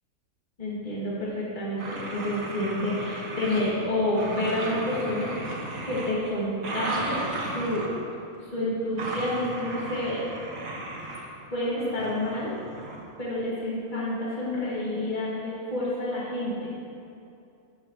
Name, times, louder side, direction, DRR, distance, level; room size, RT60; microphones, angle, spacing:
voice 1, 0.6-5.5 5.8-7.2 7.5-7.9 8.5-10.2 11.5-12.5 13.2-16.6, left 1 dB, 35° left, -7 dB, 2.0 m, -29 dB
sound 1, 1.8-3.9 4.1-8.0 9.0-11.2 11.8-13.1, right 2 dB, 80° right, 1.6 m, -35 dB
11.5 x 8.3 x 2.9 m, 2.7 s
omnidirectional pair, 1.4 m